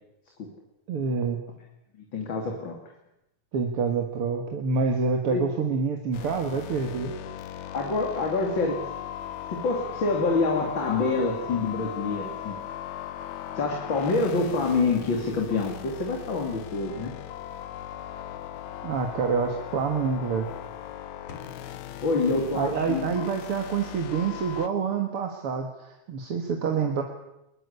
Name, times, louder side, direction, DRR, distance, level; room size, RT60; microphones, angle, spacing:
voice 1, 0.9-1.4 3.5-7.1 18.8-20.5 22.5-27.0, right 5 dB, 50° right, 3 dB, 2.5 m, -27 dB
voice 2, 2.0-2.8 5.3-5.4 7.7-8.9 9.5-12.6 13.6-17.1 22.0-23.1, left 3 dB, 40° left, 1 dB, 3.5 m, -26 dB
sound 1, 6.1-24.7, left 11 dB, 75° left, 2.2 m, -38 dB
sound 2, 21.3-23.3, left 8 dB, 55° left, 3.6 m, -46 dB
22.5 x 21.0 x 8.3 m, 0.88 s
omnidirectional pair, 3.4 m